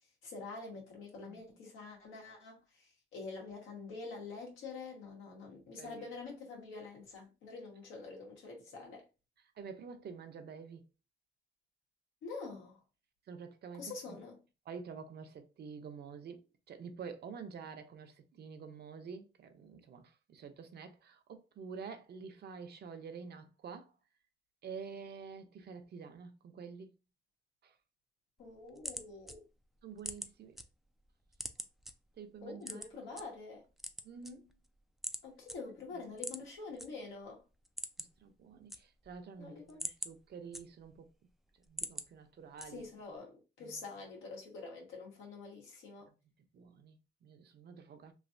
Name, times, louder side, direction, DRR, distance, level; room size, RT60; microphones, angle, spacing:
voice 1, 0.2-9.1 12.2-12.8 13.8-14.4 28.4-29.4 32.4-33.7 35.2-37.4 39.4-39.9 42.7-46.1, left 4 dB, 85° left, 1.5 m, -46 dB
voice 2, 5.8-6.1 9.6-10.9 13.3-14.2 14.7-16.4 16.7-23.9 24.6-26.9 27.6-27.7 29.8-30.6 32.2-32.9 34.0-34.5 35.9-36.0 38.0-41.1 41.7-42.8 43.6-43.8 46.5-48.1, right 5 dB, 55° right, 0.7 m, -48 dB
sound 1, 28.4-30.6 31.0-31.9 32.6-33.2 33.7-34.7 35.0-35.2 35.5-35.6 36.1-36.9 37.2-37.3 37.6-38.2 38.5-39.2 39.6-41.0 41.4-42.1 42.6-43.0, equal, ahead, 0.3 m, -43 dB
3.1 x 2.7 x 2.6 m
cardioid pair, 90°, 20 cm